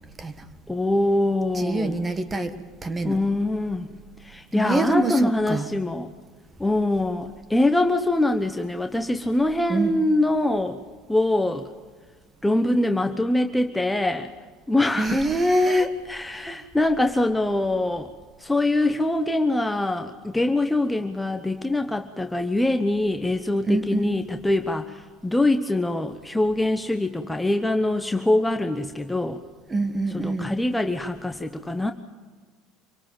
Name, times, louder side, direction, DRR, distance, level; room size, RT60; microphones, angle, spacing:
voice 1, 0.7-2.0 3.0-3.9 4.2-6.1 6.6-10.8 11.1-11.7 12.4-14.3 14.7-15.2 15.7-18.1 18.4-29.4 30.1-31.9, left 1 dB, 5° left, 6 dB, 1.0 m, -24 dB
voice 2, 1.5-2.5 2.8-3.2 4.5-5.7 9.7-9.9 15.0-15.9 16.4-16.5 23.6-24.1 29.7-30.6, right 1 dB, 20° right, 11 dB, 1.6 m, -24 dB
26.0 x 18.0 x 7.4 m, 1.5 s
supercardioid pair, 120°, 0 cm